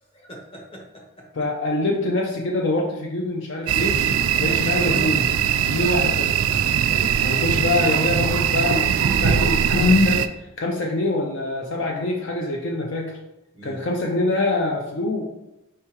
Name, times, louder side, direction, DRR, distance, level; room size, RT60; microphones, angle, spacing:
voice 1, 0.1-1.3 4.3-4.6 13.5-13.8, right 1 dB, 30° left, -1 dB, 0.9 m, -42 dB
voice 2, 1.4-4.0 4.4-5.3 5.6-6.4 7.2-13.2 13.6-15.2, left 2 dB, 60° left, 0 dB, 0.5 m, -24 dB
sound 1, 3.7-10.3, right 8 dB, 90° right, 0.3 m, -21 dB
4.6 x 3.5 x 2.9 m, 0.93 s
head